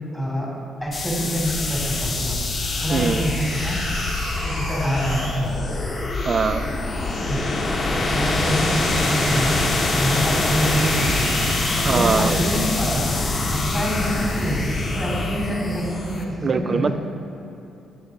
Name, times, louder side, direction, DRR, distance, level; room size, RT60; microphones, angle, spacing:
voice 1, 0.1-0.5 0.8-2.3 2.8-3.8 4.4-5.7 7.3-7.6 7.9-11.5 11.9-13.1 13.4-14.6 14.9-16.9, equal, ahead, -3 dB, 2.0 m, -26 dB
sound 1, 0.8-0.9 2.3-2.4 3.2-5.6 6.9-7.0 7.7-7.8 8.0-12.4 12.9-13.0, right 1 dB, 75° right, 1.7 m, -35 dB
sound 2, 0.9-16.2, left 2 dB, 35° left, 0.9 m, -24 dB
voice 2, 2.9-3.3 6.2-6.8 11.7-12.4 16.4-16.9, right 5 dB, 35° right, 10 dB, 0.4 m, -22 dB
8.6 x 7.0 x 4.0 m, 2.8 s
cardioid pair, 125°, 0 cm